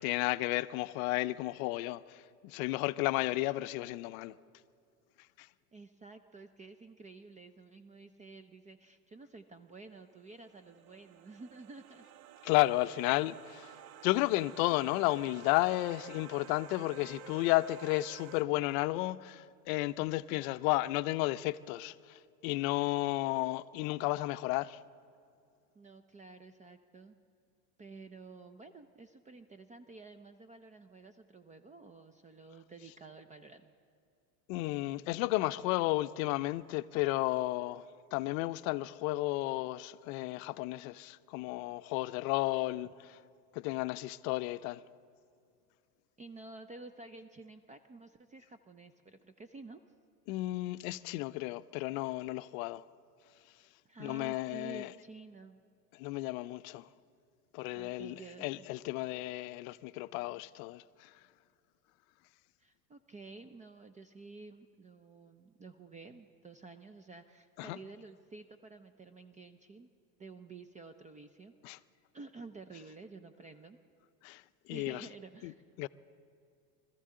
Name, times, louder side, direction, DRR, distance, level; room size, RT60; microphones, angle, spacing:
voice 1, 0.0-4.3 5.4-5.5 12.4-13.7 14.0-24.8 34.5-37.8 38.1-43.2 43.5-44.8 50.3-52.8 54.0-54.9 56.0-56.9 57.5-61.1 67.6-67.8 71.6-71.8 74.2-74.4 74.7-75.1 75.4-75.5 75.8-75.9, left 19 dB, 60° left, 0.6 m, -33 dB
voice 2, 5.7-12.1 25.7-27.2 27.8-33.7 42.8-42.9 46.2-49.8 53.8-55.6 57.7-58.7 62.6-69.9 70.2-71.8 72.1-73.8 74.7-75.6, right 3 dB, 15° right, 0.5 m, -51 dB
sound 1, 10.0-18.4, right 12 dB, 60° right, 0.8 m, -52 dB
24.5 x 14.0 x 3.7 m
hypercardioid pair, 95°, 48 cm